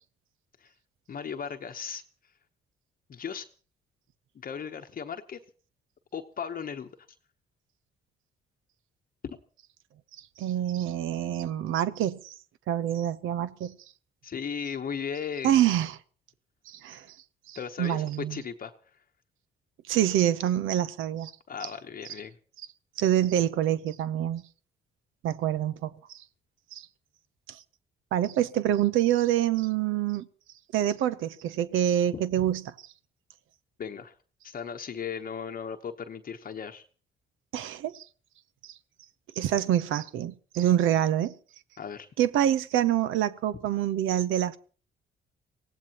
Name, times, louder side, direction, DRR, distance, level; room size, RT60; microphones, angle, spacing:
voice 1, 1.1-2.0 3.1-3.5 4.4-5.4 6.1-6.9 9.2-9.4 14.2-15.6 16.9-17.0 17.5-18.7 21.5-22.3 32.1-32.2 33.8-34.2 34.4-36.8 41.8-42.1, left 7 dB, 45° left, 0.9 m, -36 dB
voice 2, 10.4-12.3 12.7-13.7 15.4-16.0 16.7-17.1 17.5-18.4 19.9-21.3 23.0-24.4 25.2-26.2 26.7-26.9 27.5-27.6 28.1-30.3 30.7-32.7 37.5-38.0 38.6-38.7 39.4-41.3 42.2-44.6, right 11 dB, 85° right, 0.8 m, -26 dB
24.0 x 17.0 x 3.0 m
cardioid pair, 90°, 20 cm